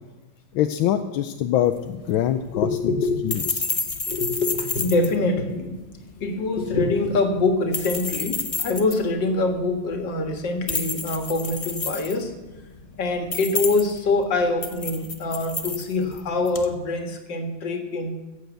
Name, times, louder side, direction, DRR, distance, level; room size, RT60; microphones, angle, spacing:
voice 1, 0.5-2.9 3.2-3.7, left 11 dB, 85° left, 8 dB, 1.4 m, -24 dB
sound 1, 1.6-16.7, left 4 dB, 40° left, 0.4 m, -32 dB
voice 2, 2.5-3.4 4.1-5.8 6.2-12.3 13.0-18.1, left 3 dB, 65° left, 5 dB, 2.3 m, -24 dB
15.0 x 7.9 x 8.1 m, 1.1 s
omnidirectional pair, 2.2 m